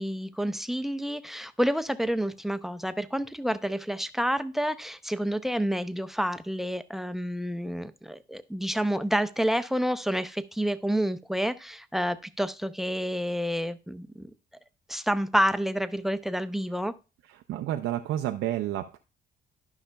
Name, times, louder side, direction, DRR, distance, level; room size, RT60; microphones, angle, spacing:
voice 1, 0.0-14.3 14.9-16.9, equal, ahead, 14 dB, 0.5 m, -29 dB
voice 2, 17.3-19.0, right 12 dB, 80° right, 5 dB, 0.5 m, -30 dB
12.5 x 5.7 x 2.2 m, 0.31 s
cardioid pair, 90°, 20 cm